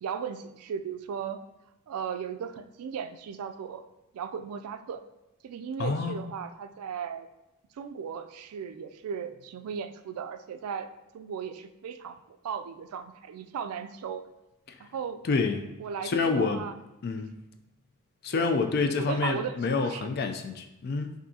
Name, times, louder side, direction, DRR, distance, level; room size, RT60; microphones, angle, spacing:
voice 1, 0.0-1.4 1.9-3.8 4.1-5.0 5.4-7.3 7.8-10.9 11.1-14.2 14.8-15.2 15.8-16.7 17.2-17.3 18.3-18.6 19.0-20.1, right 7 dB, 90° right, 9 dB, 0.3 m, -36 dB
voice 2, 5.8-6.2 15.3-15.6 16.0-16.6 17.0-17.4 18.2-21.1, left 4 dB, 45° left, 6 dB, 0.3 m, -27 dB
5.6 x 2.6 x 2.7 m, 0.93 s
head